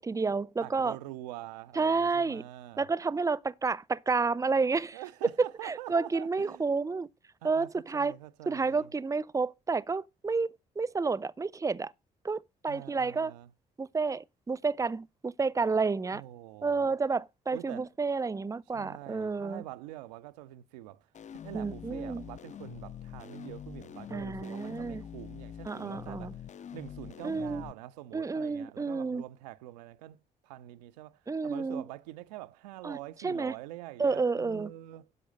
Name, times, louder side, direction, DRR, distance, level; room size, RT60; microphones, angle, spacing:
voice 1, 0.0-1.0 1.8-2.4 2.8-5.0 5.4-7.1 7.4-8.1 8.5-11.9 12.2-13.3 13.8-16.2 16.6-19.6 21.5-22.2 24.1-25.1 25.7-26.3 27.2-27.6 28.1-29.2 31.3-31.8 32.8-33.0 33.2-33.5 34.0-34.7, right 4 dB, 15° right, 0.6 m, -30 dB
voice 2, 0.6-2.9 4.9-6.6 7.4-8.9 12.7-13.5 16.1-17.0 17.5-17.9 18.7-21.1 21.4-26.4 26.7-35.1, right 15 dB, 80° right, 0.5 m, -45 dB
sound 1, 21.1-27.7, left 9 dB, 35° left, 0.5 m, -45 dB
11.0 x 6.2 x 5.2 m
figure-of-eight pair, 40°, 21 cm